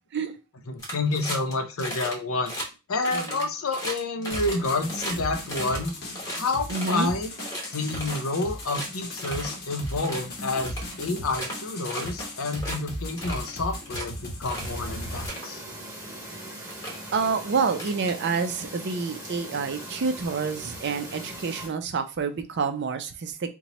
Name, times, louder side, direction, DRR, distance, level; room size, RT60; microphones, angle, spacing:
voice 1, 0.7-2.5 2.9-5.9 6.3-7.3 7.7-15.6, left 3 dB, 70° left, 6 dB, 0.6 m, -29 dB
sound 1, 0.8-1.5 1.8-2.1 2.4-2.7 3.0-5.1 5.5-7.1 7.4-8.3 8.6-8.9 9.2-9.5 9.9-10.2 10.6-11.5 11.9-12.2 12.5-12.8 13.2-14.0 14.5-14.7 15.1-15.5 16.3-16.4 16.7-17.0 17.7-18.6, equal, 15° left, 0.9 m, -35 dB
voice 2, 3.1-3.5 6.7-7.1 17.1-23.5, right 5 dB, 50° right, 8 dB, 0.4 m, -28 dB
sound 2, 4.3-15.3, equal, 45° left, 0.9 m, -37 dB
Chirp tweet, 14.5-21.7, right 1 dB, 15° right, 1.0 m, -40 dB
2.9 x 2.2 x 3.9 m, 0.30 s
head